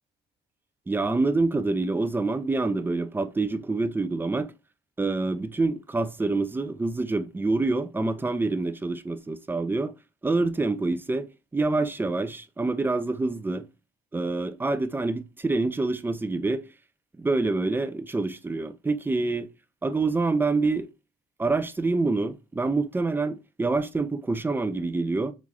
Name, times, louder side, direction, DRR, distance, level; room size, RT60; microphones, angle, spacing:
voice 1, 0.9-4.5 5.0-9.9 10.2-13.6 14.1-16.6 17.2-19.5 19.8-20.9 21.4-25.3, right 3 dB, 10° right, 0.3 m, -26 dB
3.6 x 2.4 x 3.0 m
cardioid pair, 90°, 20 cm